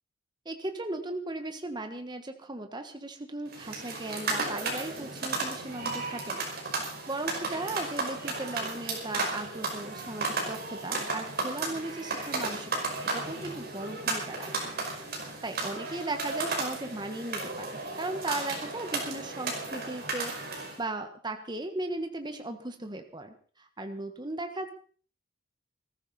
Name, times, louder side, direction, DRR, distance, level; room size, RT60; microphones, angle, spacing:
voice 1, 0.4-6.8 7.1-15.0 15.4-24.7, right 2 dB, 25° right, 6 dB, 1.4 m, -37 dB
sound 1, 3.5-20.8, right 3 dB, 55° right, 5.4 m, -34 dB
21.0 x 14.0 x 4.3 m, 0.43 s
head